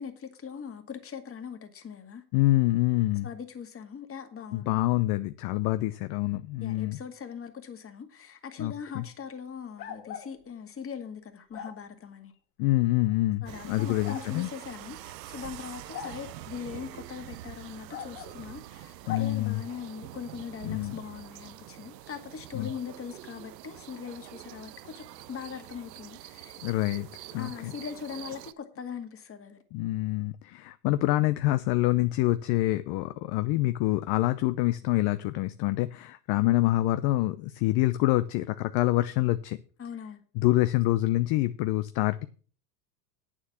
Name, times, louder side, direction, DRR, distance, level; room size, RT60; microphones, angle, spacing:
voice 1, 0.0-2.2 3.2-4.8 6.6-12.3 13.4-26.6 27.4-29.6 39.8-40.2, left 7 dB, 25° left, 2.0 m, -41 dB
voice 2, 2.3-3.3 4.5-7.0 8.6-9.1 12.6-14.5 19.1-19.6 20.6-21.0 22.5-22.7 26.6-27.7 29.7-39.6 40.3-42.3, left 17 dB, 50° left, 0.7 m, -26 dB
sound 1, 9.8-10.3 11.5-11.7 13.0-13.1 14.0-14.3 15.9-16.2 17.9-18.3 19.0-19.3, left 9 dB, 80° left, 2.6 m, -39 dB
sound 2, 13.5-28.5, right 14 dB, 85° right, 0.8 m, -45 dB
8.6 x 7.4 x 7.0 m
hypercardioid pair, 95°, 49 cm